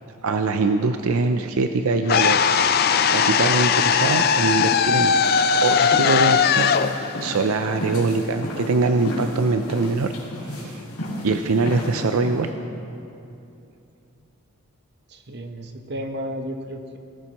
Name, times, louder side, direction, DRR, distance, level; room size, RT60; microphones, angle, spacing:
voice 1, 0.2-2.4 3.1-5.1 5.6-10.2 10.4-10.8 11.2-12.5, right 3 dB, 70° right, 7 dB, 0.5 m, -23 dB
sound 1, 2.1-8.2, left 7 dB, 45° left, 0.4 m, -19 dB
ns footstepslinol, 4.1-12.5, left 1 dB, 75° left, 2.9 m, -34 dB
voice 2, 15.1-17.0, equal, 50° right, 5 dB, 0.9 m, -33 dB
19.0 x 14.0 x 3.0 m, 2.7 s
head